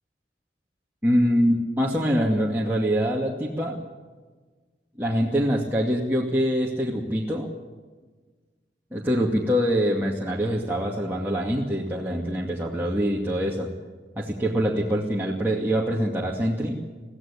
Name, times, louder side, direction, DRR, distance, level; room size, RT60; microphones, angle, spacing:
voice 1, 1.0-3.8 5.0-7.5 8.9-13.7 14.2-16.8, equal, 10° right, -4 dB, 2.4 m, -24 dB
23.5 x 16.5 x 8.8 m, 1.4 s
head